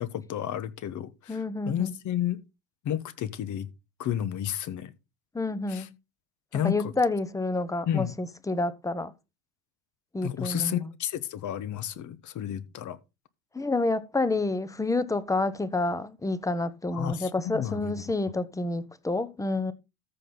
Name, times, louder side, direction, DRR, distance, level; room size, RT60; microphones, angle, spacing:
voice 1, 0.0-1.4 1.6-2.4 2.8-3.7 4.0-4.9 5.7-5.9 6.5-6.9 7.9-8.1 10.2-13.0 16.9-17.9, left 11 dB, 45° left, 1.3 m, -31 dB
voice 2, 1.3-1.9 5.3-5.9 6.6-9.1 10.1-10.9 13.5-19.7, left 2 dB, 10° left, 1.0 m, -29 dB
14.0 x 6.0 x 4.0 m
hypercardioid pair, 90°, 42 cm